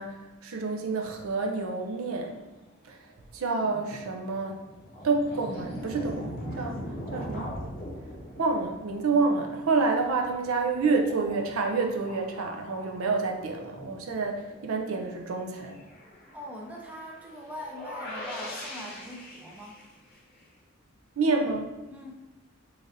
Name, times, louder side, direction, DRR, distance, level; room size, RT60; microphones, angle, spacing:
voice 1, 0.0-2.4 2.9-3.0 3.3-4.7 5.0-6.8 7.1-7.5 8.4-15.8 21.2-21.7, right 4 dB, 75° right, 2 dB, 0.5 m, -28 dB
sound 1, 1.3-2.7 3.2-3.3 3.4-14.8 15.3-15.4 15.5-20.4, equal, 45° left, 0.8 m, -42 dB
voice 2, 16.3-19.8 21.9-22.1, equal, 5° right, -3 dB, 0.5 m, -42 dB
3.9 x 3.2 x 2.6 m, 1.1 s
head